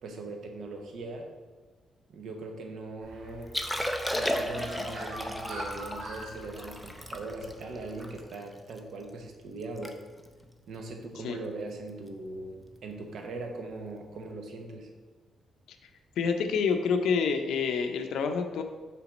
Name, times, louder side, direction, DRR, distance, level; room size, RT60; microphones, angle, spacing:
voice 1, 0.0-1.3 2.1-3.5 4.1-10.0 10.7-14.9, right 2 dB, 60° right, 3 dB, 0.9 m, -40 dB
Bird, 3.0-8.2, right 1 dB, 75° right, 1.2 m, -45 dB
Liquid, 3.4-8.8 9.3-9.4 9.6-9.9 10.2-10.4 11.0-11.3 12.7-12.8, equal, ahead, 0.4 m, -34 dB
voice 2, 16.2-18.6, left 5 dB, 75° left, 6 dB, 0.6 m, -27 dB
5.9 x 3.4 x 5.1 m, 1.4 s
cardioid pair, 170°, 0 cm